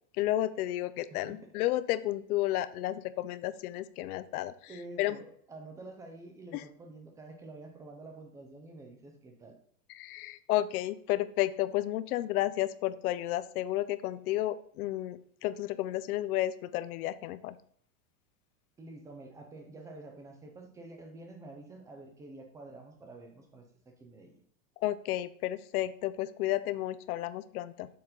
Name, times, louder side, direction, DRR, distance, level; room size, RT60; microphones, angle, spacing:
voice 1, 0.1-4.7 5.0-5.2 6.5-6.6 9.9-17.6 24.8-27.9, left 14 dB, 75° left, 15 dB, 0.6 m, -32 dB
voice 2, 4.7-9.6 18.8-24.4, right 2 dB, 10° right, 4 dB, 0.3 m, -48 dB
6.7 x 4.1 x 3.8 m, 0.64 s
supercardioid pair, 135°, 45 cm